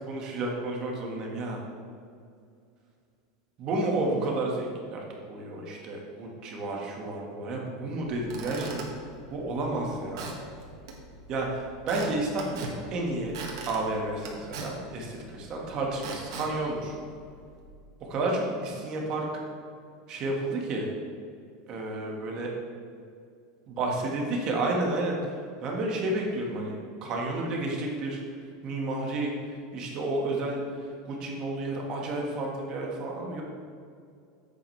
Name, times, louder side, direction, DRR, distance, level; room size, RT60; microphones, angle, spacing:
voice 1, 0.1-1.6 3.6-5.0 5.3-8.9 9.3-10.3 11.3-13.3 13.6-16.9 18.1-19.3 20.1-20.9 21.7-22.5 23.7-25.2 25.6-26.8 27.0-28.2 28.6-29.3 29.7-30.6 31.0-33.4, right 2 dB, 35° right, -1 dB, 1.6 m, -31 dB
Squeak / Wood, 8.0-17.6, right 3 dB, 85° right, 1.8 m, -42 dB
10.0 x 8.0 x 3.3 m, 2.3 s
supercardioid pair, 155°, 2 cm